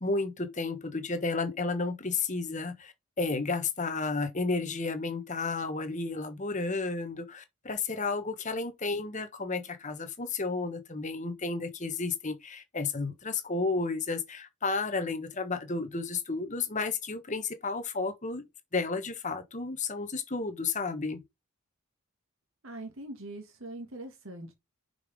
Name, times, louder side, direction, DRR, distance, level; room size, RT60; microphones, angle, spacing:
voice 1, 0.0-18.5 18.7-21.2, left 3 dB, 35° left, 1.2 m, -32 dB
voice 2, 22.6-24.5, right 1 dB, 65° right, 1.6 m, -42 dB
5.8 x 5.1 x 5.1 m
head